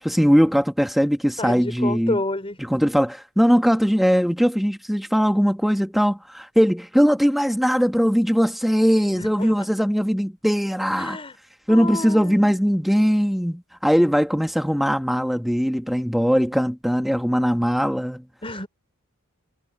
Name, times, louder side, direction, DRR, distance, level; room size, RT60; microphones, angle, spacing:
voice 1, 0.0-2.2 2.7-11.2 11.7-18.2, equal, ahead, 1.5 m, -20 dB
voice 2, 1.4-2.6 9.1-9.7 10.9-11.4 11.7-12.6 18.4-18.7, left 2 dB, 25° left, 5.6 m, -30 dB
head